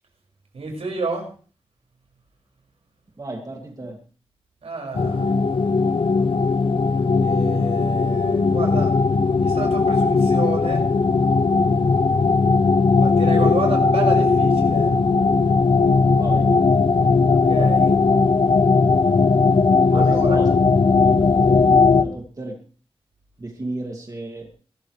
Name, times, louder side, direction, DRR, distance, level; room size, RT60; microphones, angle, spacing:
voice 1, 0.5-1.3 4.6-5.3 7.2-8.9 9.4-10.8 13.0-14.9 17.3-18.0 19.9-20.4, right 4 dB, 85° right, 1 dB, 6.0 m, -30 dB
voice 2, 3.2-4.0 16.1-16.5 19.9-20.5 21.0-22.6 23.4-24.5, right 2 dB, 35° right, 1 dB, 2.5 m, -34 dB
sound 1, 4.9-22.0, left 4 dB, 55° left, 1.0 m, -18 dB
23.0 x 14.0 x 3.4 m, 0.41 s
wide cardioid pair, 125°, 10 cm